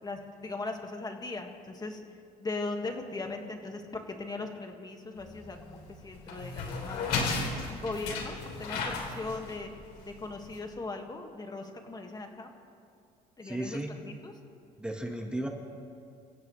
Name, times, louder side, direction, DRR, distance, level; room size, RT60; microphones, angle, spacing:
voice 1, 0.0-2.0 2.4-7.1 7.7-9.7 10.0-12.5 13.4-14.3, left 3 dB, 25° left, 3 dB, 1.8 m, -39 dB
sound 1, 5.2-10.6, left 4 dB, 85° left, 3.2 m, -35 dB
voice 2, 13.4-13.9 14.8-15.5, right 1 dB, 5° right, 2 dB, 1.4 m, -34 dB
26.5 x 16.5 x 3.2 m, 2.4 s
cardioid pair, 110°, 17 cm